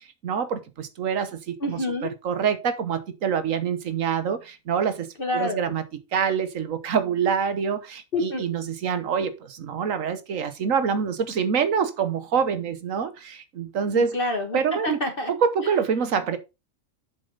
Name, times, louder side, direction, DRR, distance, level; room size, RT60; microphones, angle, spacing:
voice 1, 1.6-2.1 5.2-5.6 8.1-8.5 14.0-15.3, left 2 dB, 45° left, 1.4 m, -27 dB
voice 2, 2.9-4.4 4.7-4.9 5.3-5.8 6.1-7.8 8.2-9.3 9.7-13.1 13.8-14.1 14.5-15.0 15.4-16.4, right 7 dB, 80° right, 1.5 m, -24 dB
7.7 x 6.8 x 3.9 m
omnidirectional pair, 1.4 m